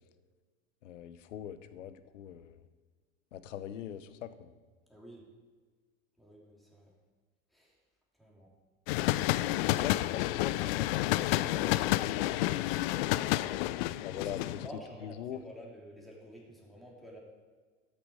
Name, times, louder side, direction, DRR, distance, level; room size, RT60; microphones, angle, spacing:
voice 1, 0.8-2.7 3.3-4.5 9.6-13.3 14.0-14.4 15.0-15.4, left 10 dB, 70° left, 13 dB, 0.9 m, -42 dB
voice 2, 4.9-5.3 6.2-6.9 7.5-7.8 8.2-8.5 14.1-17.2, equal, ahead, -3 dB, 3.4 m, -50 dB
sound 1, 8.9-14.7, left 16 dB, 50° left, 0.5 m, -30 dB
13.5 x 6.8 x 5.0 m, 1.5 s
figure-of-eight pair, 80°, 39 cm